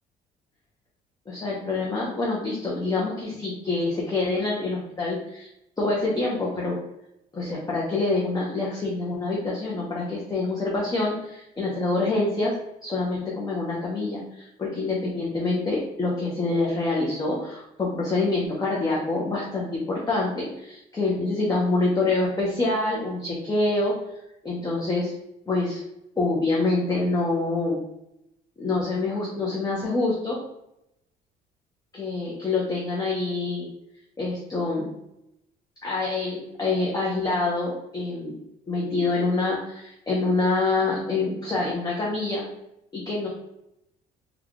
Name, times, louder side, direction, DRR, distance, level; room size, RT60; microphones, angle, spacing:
voice 1, 1.3-5.5 5.8-6.8 7.3-12.6 12.8-24.0 24.4-25.1 25.5-25.8 26.2-27.8 28.6-30.4 31.9-33.7 34.2-34.9 35.8-38.3 38.7-42.5 42.9-43.3, left 3 dB, 20° left, -4 dB, 0.8 m, -26 dB
3.4 x 2.3 x 3.4 m, 0.85 s
cardioid pair, 110°, 17 cm